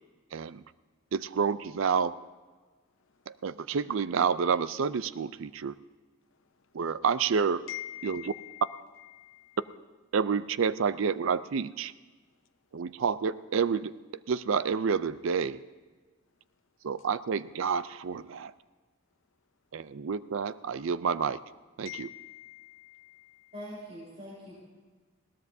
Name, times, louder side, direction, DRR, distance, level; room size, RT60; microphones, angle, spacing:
voice 1, 0.3-0.6 1.1-2.2 3.4-5.8 6.7-7.7 8.0-8.3 10.1-11.9 12.7-14.0 14.3-15.6 16.8-18.5 19.7-21.4 21.8-22.1, right 6 dB, 70° right, 15 dB, 0.4 m, -29 dB
voice 2, 7.7-9.6 21.9-23.5, left 14 dB, 70° left, 10 dB, 0.7 m, -44 dB
voice 3, 23.5-24.6, equal, 35° right, -10 dB, 5.9 m, -43 dB
20.5 x 18.0 x 2.7 m, 1.4 s
head